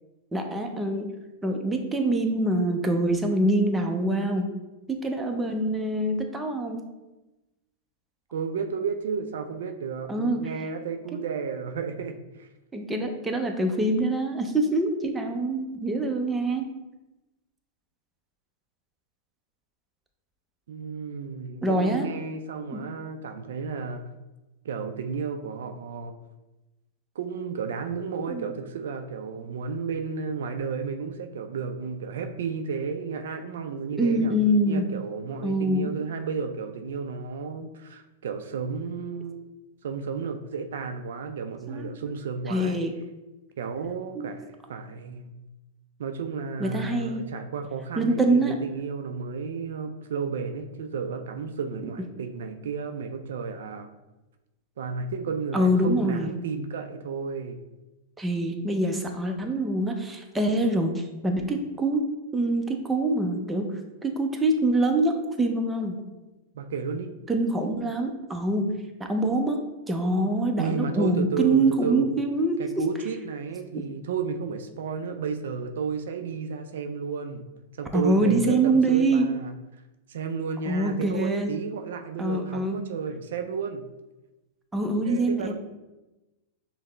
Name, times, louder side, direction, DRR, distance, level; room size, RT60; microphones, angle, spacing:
voice 1, 0.3-1.1 1.4-4.5 4.9-6.8 10.1-10.5 12.7-16.7 21.6-22.1 22.7-22.8 28.3-28.5 34.0-34.9 35.4-36.0 41.7-41.9 42.5-43.0 44.2-44.3 46.6-47.3 48.0-48.6 55.5-56.3 58.2-62.1 62.3-63.7 64.0-66.0 67.3-68.7 69.0-69.6 69.9-72.6 73.7-73.8 77.9-79.3 80.7-81.5 82.2-82.8 84.7-85.5, right 1 dB, 10° right, 3 dB, 0.5 m, -25 dB
voice 2, 8.3-12.5 20.7-24.0 24.6-26.1 27.2-34.4 34.7-39.4 39.8-42.8 43.6-45.3 46.0-53.9 54.8-57.6 66.5-67.1 70.6-72.1 72.6-77.4 77.8-79.5 80.1-83.8 85.0-85.5, right 5 dB, 70° right, 6 dB, 0.3 m, -32 dB
5.5 x 2.0 x 3.3 m, 1.0 s
hypercardioid pair, 105°, 0 cm